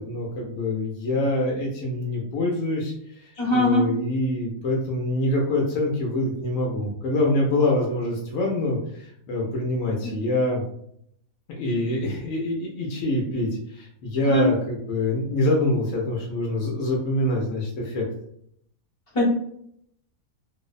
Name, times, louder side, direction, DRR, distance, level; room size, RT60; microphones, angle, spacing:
voice 1, 0.0-10.6 11.5-18.0, left 1 dB, 70° left, -2 dB, 0.8 m, -25 dB
voice 2, 3.4-3.8 14.3-14.5 19.1-19.2, left 1 dB, 30° left, -7 dB, 0.6 m, -20 dB
2.6 x 2.0 x 2.3 m, 0.69 s
omnidirectional pair, 1.6 m